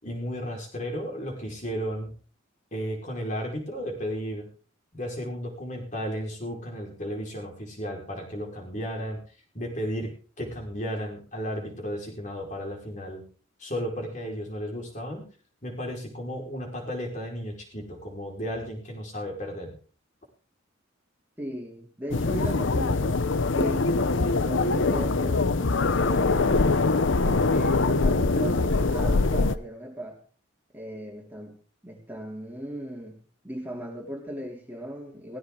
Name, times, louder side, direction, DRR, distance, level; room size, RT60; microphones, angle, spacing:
voice 1, 0.0-2.1 2.7-4.5 4.9-9.2 9.5-13.2 13.6-15.3 15.6-19.8, equal, 40° left, 1 dB, 4.9 m, -34 dB
voice 2, 21.4-23.2 23.5-23.9 24.1-26.8 27.2-30.2 30.7-31.6 31.8-33.2 33.4-35.4, equal, 10° right, 0 dB, 3.1 m, -37 dB
sound 1, 22.1-29.6, left 3 dB, 75° left, 0.8 m, -23 dB
17.5 x 15.5 x 3.8 m, 0.40 s
head